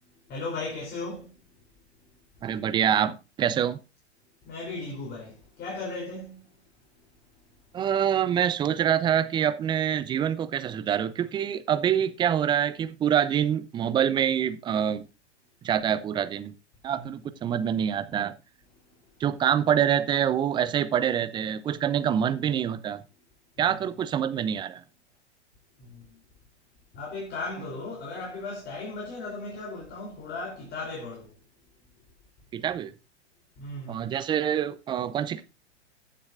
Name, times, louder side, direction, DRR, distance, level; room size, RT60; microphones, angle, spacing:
voice 1, 0.3-1.3 4.4-6.4 16.9-17.1 23.6-23.7 25.8-26.0 26.9-31.3 33.6-34.2, left 3 dB, 30° left, 3.2 m, -36 dB
voice 2, 2.4-3.8 7.7-15.1 15.6-16.5 16.8-18.3 19.2-23.0 23.6-24.8 32.5-32.9 33.9-35.4, right 9 dB, 15° right, 0.4 m, -26 dB
15.0 x 7.4 x 2.4 m
hypercardioid pair, 105°, 35 cm